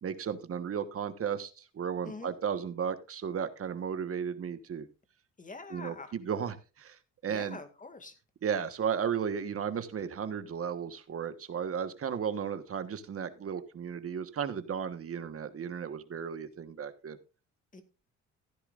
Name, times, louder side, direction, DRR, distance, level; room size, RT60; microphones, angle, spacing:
voice 1, 0.0-4.9 5.7-7.0 7.2-7.6 8.4-17.2, right 7 dB, 50° right, 1.4 m, -34 dB
voice 2, 2.0-2.4 5.4-6.2 7.3-8.1 17.7-17.8, left 3 dB, 25° left, 2.3 m, -45 dB
15.5 x 10.0 x 2.5 m
cardioid pair, 90°, 30 cm